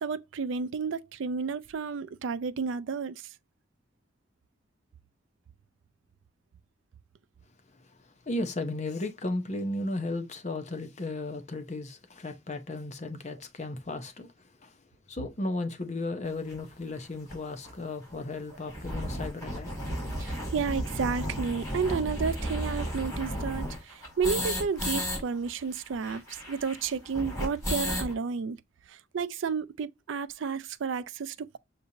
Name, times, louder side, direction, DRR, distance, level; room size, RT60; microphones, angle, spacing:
voice 1, 0.0-3.2 20.2-28.6 28.9-31.6, right 5 dB, 85° right, 0.4 m, -32 dB
voice 2, 8.3-14.8 15.1-19.8 20.3-20.4, left 2 dB, 35° left, 0.7 m, -35 dB
sound 1, 16.5-16.6 17.3-17.4 17.6-17.7 18.0-18.1 18.5-25.2 25.5-25.6 25.8-28.1, equal, 15° left, 2.4 m, -33 dB
6.7 x 2.7 x 2.7 m
head